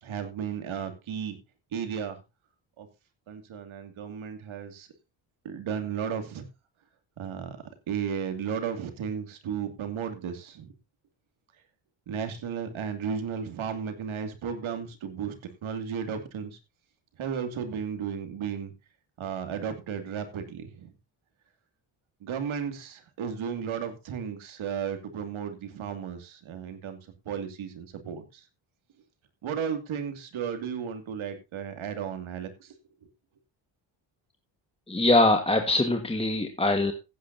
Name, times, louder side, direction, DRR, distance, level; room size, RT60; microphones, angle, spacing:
voice 1, 0.0-1.4 1.7-2.2 2.8-2.9 3.3-4.9 5.4-6.4 7.2-7.6 7.9-10.7 12.1-16.6 17.2-18.7 19.2-20.9 22.2-27.0 27.3-28.5 29.4-32.8, right 7 dB, 70° right, 7 dB, 2.6 m, -34 dB
voice 2, 34.9-36.9, left 2 dB, 10° left, 6 dB, 1.5 m, -23 dB
15.5 x 9.4 x 2.7 m, 0.26 s
supercardioid pair, 65°, 50 cm